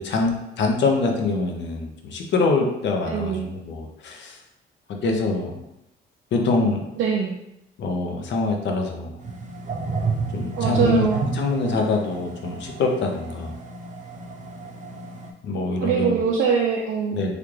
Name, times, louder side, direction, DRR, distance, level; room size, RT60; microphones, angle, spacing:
voice 1, 0.0-4.4 4.9-5.6 6.3-6.9 7.8-9.2 10.3-11.1 11.3-13.5 15.4-16.2 17.1-17.3, left 3 dB, 65° left, 2 dB, 0.6 m, -24 dB
voice 2, 3.1-3.5 7.0-7.4 10.6-11.2 15.8-17.3, right 6 dB, 85° right, -2 dB, 0.5 m, -23 dB
sound 1, 9.2-15.3, right 5 dB, 40° right, 0.6 m, -30 dB
3.3 x 2.4 x 3.1 m, 0.87 s
cardioid pair, 90°, 20 cm